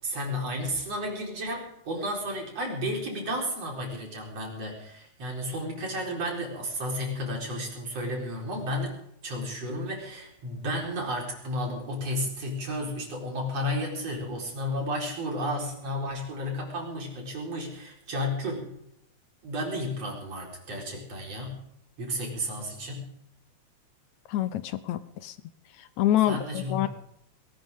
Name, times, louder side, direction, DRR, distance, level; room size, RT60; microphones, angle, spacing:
voice 1, 0.0-9.0 9.2-18.7 19.4-21.6 22.0-23.1 26.3-26.9, equal, 55° right, -1 dB, 5.5 m, -32 dB
voice 2, 24.3-25.3 26.0-26.9, left 12 dB, 75° left, 13 dB, 2.1 m, -26 dB
21.0 x 18.5 x 3.7 m, 0.77 s
omnidirectional pair, 3.4 m